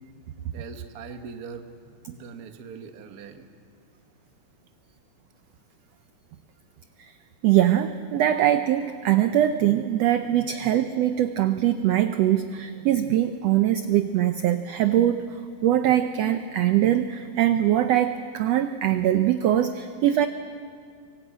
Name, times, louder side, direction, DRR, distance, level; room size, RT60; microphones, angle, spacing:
voice 1, 0.5-3.5, right 5 dB, 65° right, 6 dB, 0.9 m, -41 dB
voice 2, 7.4-15.3 15.6-20.3, right 12 dB, 85° right, 9 dB, 1.4 m, -22 dB
24.5 x 18.0 x 8.6 m, 2.2 s
omnidirectional pair, 3.7 m